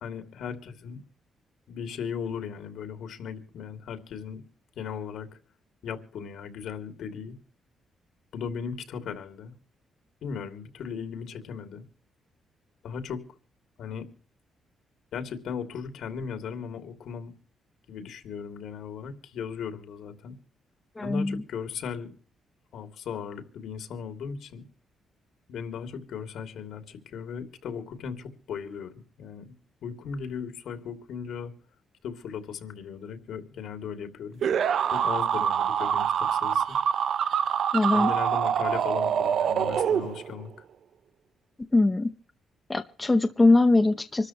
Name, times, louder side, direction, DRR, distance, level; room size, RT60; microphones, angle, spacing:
voice 1, 0.0-1.0 1.7-4.4 4.8-5.4 5.8-7.4 8.3-9.5 10.2-11.8 12.8-13.2 13.8-14.1 15.1-17.3 17.9-20.3 21.0-22.1 22.7-24.6 25.5-29.5 29.8-31.5 32.0-34.4 34.9-36.8 37.9-40.5, left 6 dB, 75° left, 2.8 m, -37 dB
voice 2, 21.0-21.4 37.7-38.1 41.7-42.1 42.7-44.3, left 2 dB, 15° left, 0.9 m, -21 dB
sound 1, 34.4-40.5, right 8 dB, 60° right, 0.7 m, -25 dB
26.0 x 13.0 x 3.2 m
cardioid pair, 140°, 0 cm